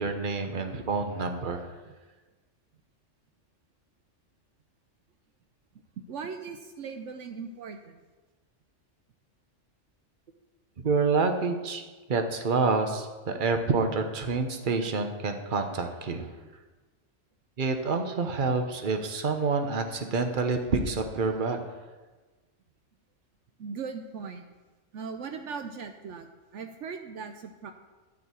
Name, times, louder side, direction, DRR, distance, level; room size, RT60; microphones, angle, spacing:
voice 1, 0.0-1.7 10.8-11.8 12.1-16.3 17.6-21.7, right 4 dB, 45° right, 6 dB, 1.1 m, -28 dB
voice 2, 6.1-8.0 23.6-24.5 24.9-27.7, right 5 dB, 75° right, 6 dB, 1.0 m, -39 dB
12.5 x 4.7 x 8.3 m, 1.3 s
omnidirectional pair, 1.3 m